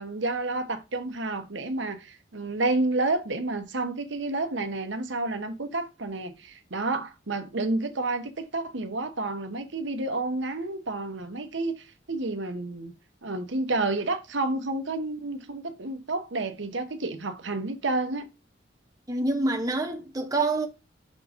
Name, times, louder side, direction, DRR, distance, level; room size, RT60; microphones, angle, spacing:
voice 1, 0.0-12.9 13.2-18.3, right 2 dB, 65° right, 1.1 m, -30 dB
voice 2, 19.1-20.7, right 2 dB, 20° right, 1.1 m, -26 dB
6.2 x 3.8 x 5.1 m
head